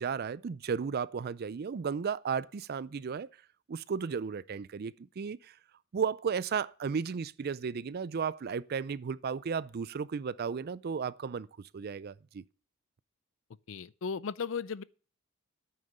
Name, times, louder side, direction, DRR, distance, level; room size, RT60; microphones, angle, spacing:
voice 1, 0.0-3.3 3.7-5.5 5.9-12.4, right 6 dB, 50° right, 0.4 m, -34 dB
voice 2, 13.7-14.8, left 6 dB, 65° left, 0.5 m, -36 dB
9.0 x 6.5 x 8.7 m
head